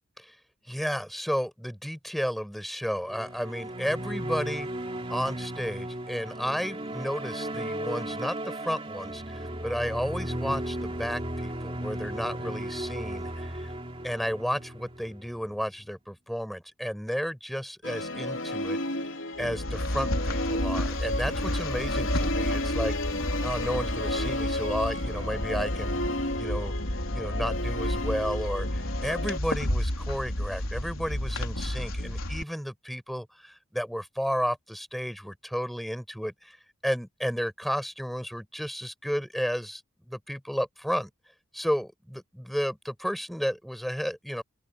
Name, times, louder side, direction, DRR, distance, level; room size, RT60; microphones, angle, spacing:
voice 1, 0.7-4.7 5.1-13.7 14.0-18.8 19.4-26.0 26.4-26.7 27.1-36.6 36.8-41.1 41.5-44.4, equal, ahead, 6.1 m, -32 dB
sound 1, 3.0-15.5, right 1 dB, 25° right, 3.2 m, -35 dB
Musical instrument, 17.8-29.4, left 1 dB, 60° left, 3.5 m, -32 dB
sound 2, 19.4-32.4, left 1 dB, 80° left, 3.8 m, -31 dB
open air
head